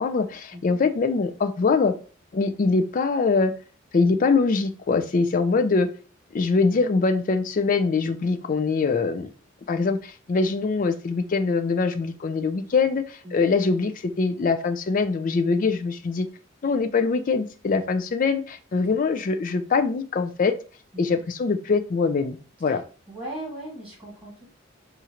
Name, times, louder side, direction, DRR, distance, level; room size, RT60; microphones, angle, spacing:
voice 1, 0.0-1.9 2.3-3.5 3.9-5.9 6.3-9.3 9.7-16.3 16.6-20.6 21.0-22.8, left 4 dB, 40° left, 9 dB, 0.3 m, -23 dB
voice 2, 0.5-0.8 13.2-13.5 18.8-19.0 20.9-21.1 22.7-22.8 23.1-24.5, right 1 dB, 10° right, -5 dB, 1.8 m, -38 dB
4.3 x 2.5 x 2.9 m, 0.37 s
head